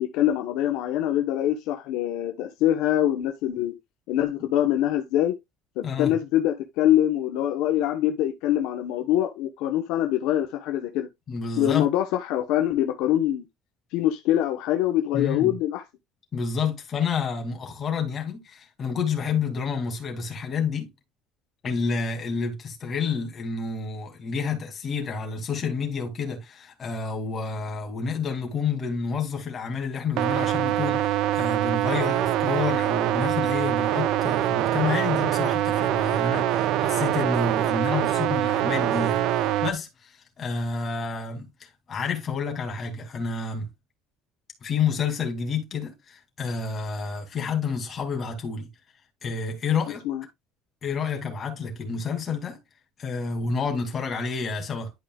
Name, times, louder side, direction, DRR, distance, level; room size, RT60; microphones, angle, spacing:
voice 1, 0.0-3.7 4.1-5.3 5.8-11.1 11.6-13.4 13.9-15.8 50.0-50.2, left 12 dB, 75° left, 1.0 m, -24 dB
voice 2, 5.8-6.1 11.3-11.9 15.1-15.5 16.3-20.9 21.6-43.7 44.6-48.7 49.2-50.0 50.8-52.6 53.0-54.9, left 5 dB, 30° left, 2.6 m, -29 dB
sound 1, 30.2-39.7, right 13 dB, 65° right, 0.6 m, -24 dB
11.5 x 5.1 x 2.4 m
cardioid pair, 150°, 0 cm